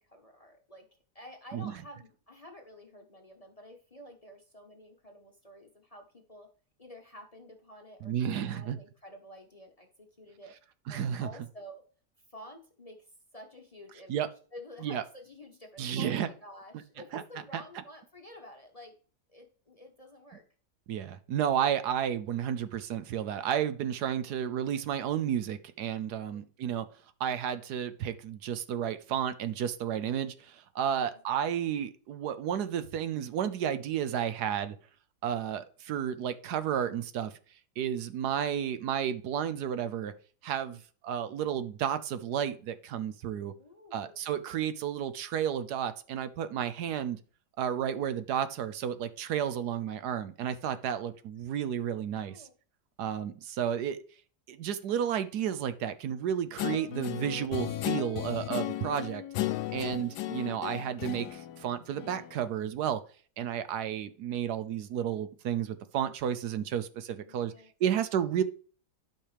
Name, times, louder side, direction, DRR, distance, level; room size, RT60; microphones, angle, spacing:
voice 1, 0.1-0.8 1.1-6.5 6.8-10.5 10.9-11.8 12.3-13.1 13.3-14.2 14.5-18.9 19.3-20.4 24.2-24.5 26.1-26.5 30.9-31.2 40.7-40.8 43.6-44.2 51.0-51.2 52.2-52.5 56.3-57.0 67.2-67.7, equal, 25° left, 0.9 m, -50 dB
voice 2, 8.0-8.8 10.9-11.3 14.1-14.3 14.8-15.0 15.8-16.3 17.1-17.2 17.5-17.6 20.9-26.9 27.2-34.8 35.2-37.3 37.8-40.1 40.4-43.5 43.9-47.2 47.6-52.4 53.0-54.0 54.5-59.2 59.7-63.0 63.4-67.5 67.8-68.4, right 9 dB, 75° right, 1.2 m, -32 dB
Guitar, 56.6-62.4, left 14 dB, 80° left, 1.2 m, -35 dB
12.0 x 5.6 x 3.3 m
omnidirectional pair, 1.8 m